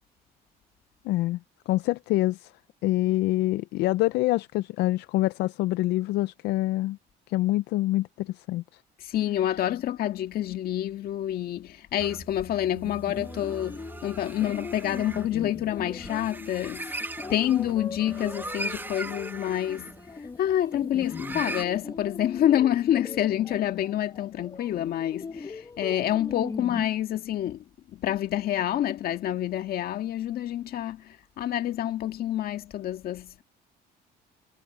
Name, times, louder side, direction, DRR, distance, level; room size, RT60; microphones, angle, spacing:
voice 1, 1.0-1.4 1.7-2.5 2.8-7.0 7.3-8.6, left 17 dB, 80° left, 0.4 m, -26 dB
voice 2, 9.0-16.9 17.3-19.9 20.4-27.6 27.9-33.4, left 11 dB, 65° left, 1.9 m, -28 dB
sound 1, 12.0-21.6, right 2 dB, 10° right, 0.8 m, -39 dB
sound 2, 13.1-26.9, left 4 dB, 20° left, 1.0 m, -40 dB
cardioid pair, 110°, 17 cm